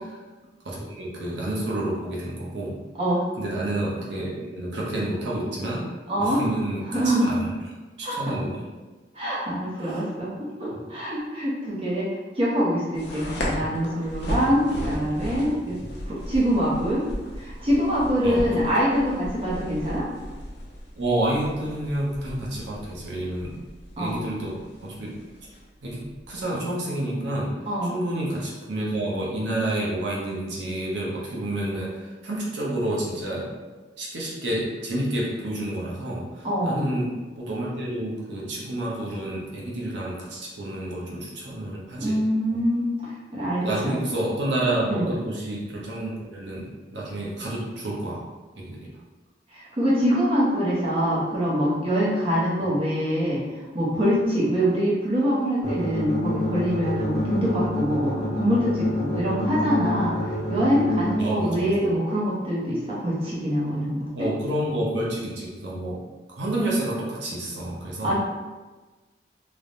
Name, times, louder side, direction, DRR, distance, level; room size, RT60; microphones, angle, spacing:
voice 1, 0.6-2.8 3.4-5.9 6.2-7.5 8.0-8.6 9.7-10.0 10.7-10.8 13.5-13.7 14.4-15.3 15.7-15.9 18.2-18.7 21.0-23.6 24.0-25.2 25.8-27.5 27.9-33.5 34.0-42.2 42.5-42.6 43.6-48.2 48.6-48.9 61.2-61.9 64.1-66.0 66.3-68.2, right 1 dB, 75° right, -5 dB, 0.6 m, -29 dB
voice 2, 6.1-6.4 6.9-7.4 8.0-8.3 9.1-12.1 12.4-15.8 16.1-17.0 17.4-20.1 24.0-24.2 27.7-27.9 36.4-36.9 42.0-42.8 43.3-43.9 44.9-45.1 49.5-53.4 53.7-60.2 60.5-64.3 68.0-68.2, equal, 30° right, -7 dB, 0.6 m, -24 dB
sound 1, 12.9-26.4, equal, 65° left, 0.6 m, -36 dB
sound 2, 55.6-61.1, left 2 dB, 35° left, 0.9 m, -26 dB
3.2 x 2.1 x 2.5 m, 1.2 s
head